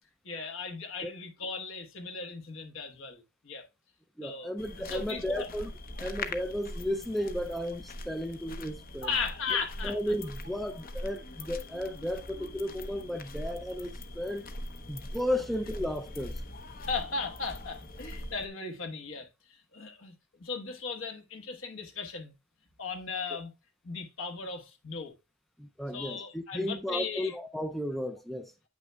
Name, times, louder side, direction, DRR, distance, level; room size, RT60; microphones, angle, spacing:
voice 1, 0.2-3.6 4.2-4.5 4.8-5.5 9.0-10.0 16.9-19.3 19.7-20.1 20.4-22.3 22.8-23.5 23.8-25.1 25.9-27.3, left 4 dB, 65° left, 1.3 m, -36 dB
voice 2, 4.2-5.7 6.0-9.1 9.5-14.5 14.9-16.4 23.3-23.4 25.6-28.7, equal, ahead, 0.4 m, -34 dB
sound 1, 4.6-18.5, left 1 dB, 45° left, 0.8 m, -42 dB
8.8 x 6.0 x 2.2 m
head